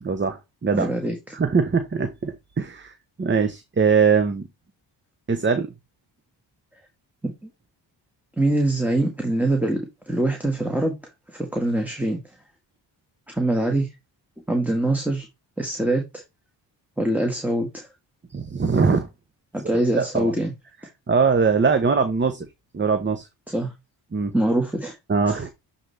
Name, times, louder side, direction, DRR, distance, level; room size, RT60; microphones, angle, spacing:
voice 1, 0.0-0.9 1.3-4.4 5.3-5.7 18.3-19.1 19.7-20.3 21.1-22.5 22.7-23.3 24.1-24.3 25.1-25.5, right 5 dB, 25° right, 1.0 m, -22 dB
voice 2, 0.7-1.4 7.2-7.3 8.4-10.9 11.3-12.2 13.3-13.9 14.5-15.3 15.6-16.2 17.0-17.9 19.5-20.5 23.5-23.7 24.3-24.9 25.3-25.4, right 1 dB, 5° right, 1.7 m, -24 dB
7.6 x 4.1 x 3.4 m
cardioid pair, 80°, 45 cm